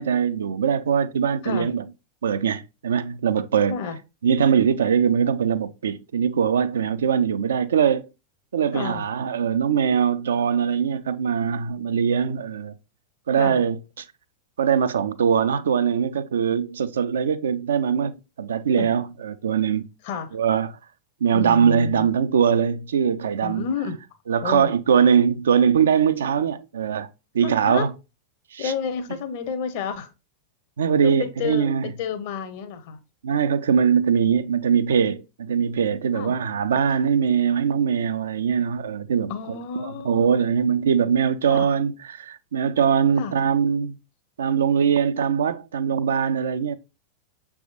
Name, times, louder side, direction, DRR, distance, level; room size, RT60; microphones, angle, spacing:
voice 1, 0.0-1.8 2.2-3.8 4.2-8.0 8.5-12.8 13.3-14.1 14.6-18.1 18.4-19.9 20.3-20.7 21.2-23.6 24.3-27.1 27.3-27.9 28.5-28.7 30.8-31.9 33.2-39.3 39.8-44.0 44.4-46.8, right 7 dB, 65° right, 0.4 m, -22 dB
voice 2, 8.7-9.0 13.4-13.6 18.7-18.9 20.0-20.4 21.3-22.1 23.4-24.0 24.4-24.7 27.4-27.9 28.6-30.1 31.0-33.0 36.1-36.3 39.3-40.3 41.5-41.7 43.2-43.4, left 6 dB, 50° left, 0.7 m, -30 dB
6.2 x 3.4 x 2.4 m
figure-of-eight pair, 90°, 0 cm